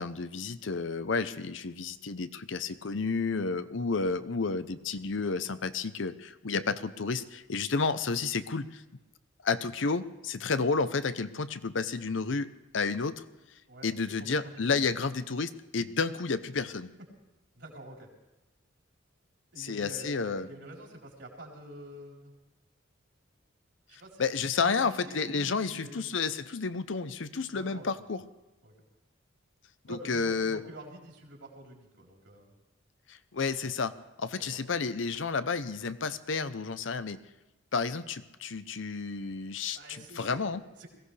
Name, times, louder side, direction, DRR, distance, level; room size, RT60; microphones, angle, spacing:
voice 1, 0.0-8.8 9.4-13.2 13.8-16.9 19.6-20.5 24.2-28.2 29.9-30.6 33.1-37.2 37.7-40.6, left 4 dB, 70° left, 13 dB, 0.7 m, -31 dB
voice 2, 14.2-14.8 17.6-18.1 19.5-22.4 23.9-26.0 27.5-27.9 28.6-28.7 29.9-32.5 34.4-34.5 39.7-40.5 40.8-40.9, right 1 dB, 65° right, -1 dB, 4.0 m, -47 dB
21.5 x 15.5 x 3.3 m, 1.1 s
head